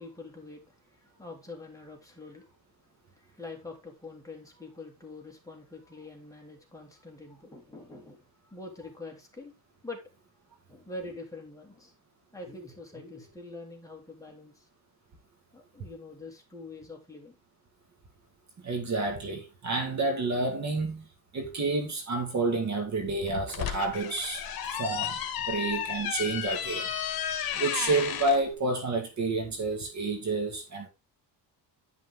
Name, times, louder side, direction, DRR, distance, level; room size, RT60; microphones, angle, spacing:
voice 1, 0.0-2.6 3.1-9.5 9.8-10.0 10.7-11.9 12.3-14.7 15.5-17.4 25.5-25.7, left 2 dB, 10° left, 2.9 m, -45 dB
voice 2, 18.6-21.1 21.3-24.5 24.7-25.2 25.4-26.9 27.5-30.9, right 2 dB, 40° right, 1.9 m, -29 dB
sound 1, 23.3-28.4, left 9 dB, 55° left, 1.7 m, -33 dB
10.5 x 6.1 x 3.6 m
cardioid pair, 135°, 42 cm